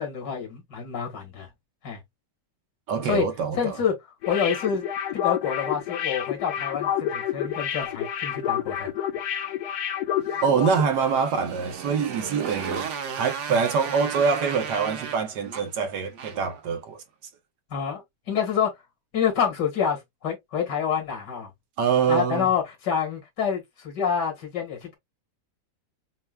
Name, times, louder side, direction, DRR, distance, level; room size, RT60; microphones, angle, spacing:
voice 1, 0.0-1.5 1.8-2.0 3.0-3.3 3.6-3.9 4.3-4.8 5.1-8.9 17.7-18.0 18.3-18.7 19.1-21.5 22.1-25.0, left 7 dB, 90° left, 2.4 m, -27 dB
voice 2, 2.9-3.8 10.4-12.9 13.2-17.0 21.8-22.5, right 6 dB, 80° right, 1.5 m, -25 dB
sound 1, 4.2-10.8 11.1-11.2, left 10 dB, 70° left, 1.3 m, -29 dB
Motorcycle, 10.3-16.6, right 6 dB, 55° right, 1.0 m, -35 dB
6.7 x 2.3 x 2.2 m
omnidirectional pair, 1.8 m